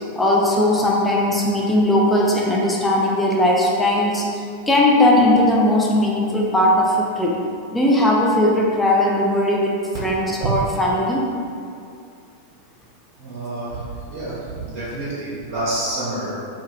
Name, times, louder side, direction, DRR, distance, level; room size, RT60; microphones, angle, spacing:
voice 1, 0.2-7.4 7.7-9.7 10.0-11.2, left 1 dB, 10° left, -3 dB, 0.4 m, -18 dB
voice 2, 13.2-16.3, right 2 dB, 45° right, -9 dB, 0.7 m, -28 dB
2.4 x 2.2 x 3.2 m, 2.4 s
figure-of-eight pair, 90°, 0 cm